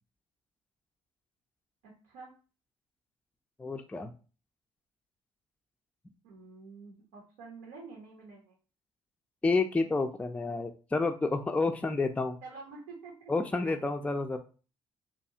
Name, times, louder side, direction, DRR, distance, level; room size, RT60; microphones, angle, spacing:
voice 1, 1.8-2.3 6.2-8.6 12.4-13.7, right 4 dB, 80° right, -1 dB, 0.7 m, -48 dB
voice 2, 3.6-4.1 9.4-12.4 13.3-14.4, left 3 dB, 10° left, 5 dB, 0.3 m, -29 dB
2.7 x 2.3 x 2.7 m, 0.36 s
hypercardioid pair, 55°, 16 cm